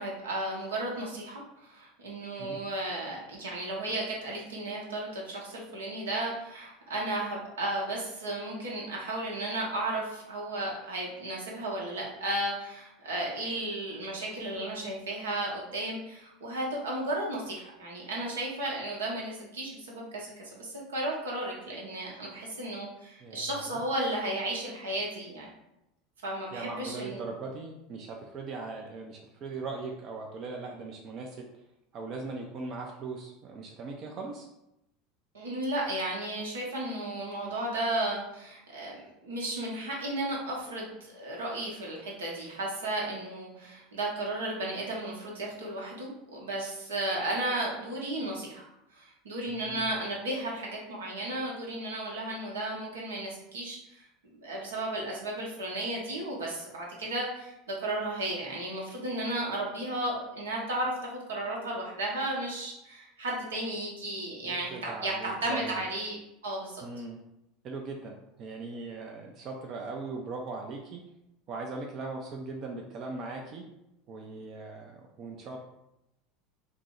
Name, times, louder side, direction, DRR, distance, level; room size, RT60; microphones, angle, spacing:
voice 1, 0.0-25.5 26.2-27.2 35.3-48.6 48.9-54.1 54.3-60.9 61.3-66.2 66.4-66.8, right 1 dB, 85° right, -3 dB, 0.8 m, -34 dB
voice 2, 23.2-23.8 26.5-31.4 31.9-34.5 49.5-49.9 64.4-65.8 66.8-67.2 67.6-71.0 71.5-73.6 74.1-75.6, right 3 dB, 45° right, 1 dB, 0.4 m, -39 dB
2.6 x 2.0 x 3.7 m, 0.88 s
hypercardioid pair, 85°, 0 cm